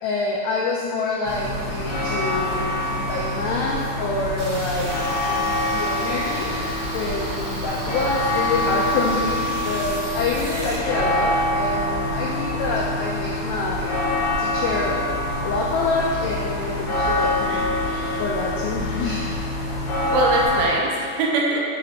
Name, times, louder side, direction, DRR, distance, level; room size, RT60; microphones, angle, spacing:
voice 1, 0.0-4.9 5.2-6.5 6.9-14.0 14.4-15.0 15.4-17.7 18.2-19.3, left 3 dB, 85° left, -3 dB, 2.4 m, -26 dB
sound 1, 1.2-20.7, left 1 dB, 70° left, 2.8 m, -25 dB
sound 2, 4.4-10.8, right 2 dB, 70° right, 3.1 m, -35 dB
voice 2, 20.1-21.7, right 2 dB, 85° right, -2 dB, 3.0 m, -22 dB
6.6 x 3.9 x 4.2 m, 2.3 s
omnidirectional pair, 5.4 m